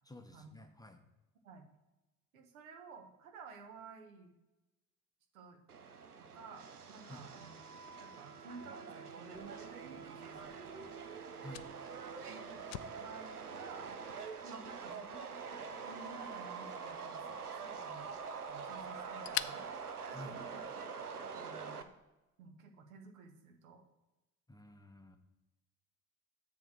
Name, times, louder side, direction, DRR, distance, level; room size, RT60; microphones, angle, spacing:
voice 1, 0.0-1.0 7.1-7.3 11.4-11.7 20.1-20.4 24.5-25.2, left 1 dB, 10° left, 6 dB, 0.7 m, -51 dB
voice 2, 2.3-4.3 5.3-5.6 6.3-7.6 7.8-10.9 12.2-12.6 12.9-13.9 14.4-18.2 18.5-19.7 20.1-20.6 21.3-21.9 22.4-23.8, right 4 dB, 70° right, 4 dB, 1.3 m, -54 dB
Subway metro underground, 5.7-21.8, right 5 dB, 85° right, 0.6 m, -45 dB
Fire, 9.3-20.9, left 15 dB, 45° left, 0.4 m, -49 dB
7.5 x 3.8 x 6.3 m, 1.0 s
figure-of-eight pair, 60°, 44 cm